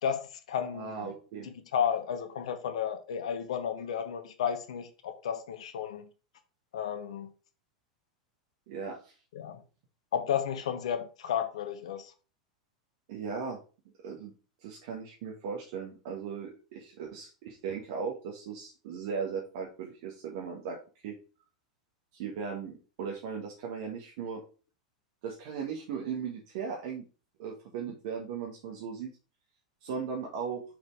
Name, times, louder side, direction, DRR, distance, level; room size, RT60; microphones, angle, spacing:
voice 1, 0.0-1.1 1.4-6.1 6.7-7.3 9.3-9.6 10.1-12.1, left 8 dB, 60° left, 1.1 m, -33 dB
voice 2, 0.7-1.5 8.7-9.1 13.1-13.6 14.0-14.3 14.6-20.8 21.0-21.1 22.1-24.4 25.2-27.0 27.4-29.1 29.8-30.6, right 6 dB, 50° right, 1.6 m, -37 dB
6.0 x 4.9 x 4.7 m
figure-of-eight pair, 90°, 4 cm